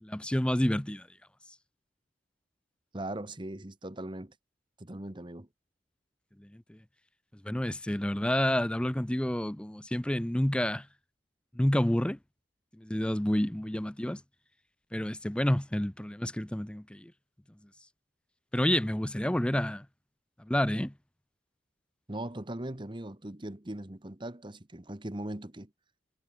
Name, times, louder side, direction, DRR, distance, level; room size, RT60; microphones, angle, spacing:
voice 1, 0.0-1.1 6.4-6.8 7.4-10.9 11.5-12.2 12.8-14.2 14.9-17.1 18.5-19.9 20.4-20.9, left 1 dB, 5° left, 0.5 m, -29 dB
voice 2, 2.9-4.3 4.8-5.5 22.1-25.7, right 1 dB, 25° right, 1.3 m, -39 dB
head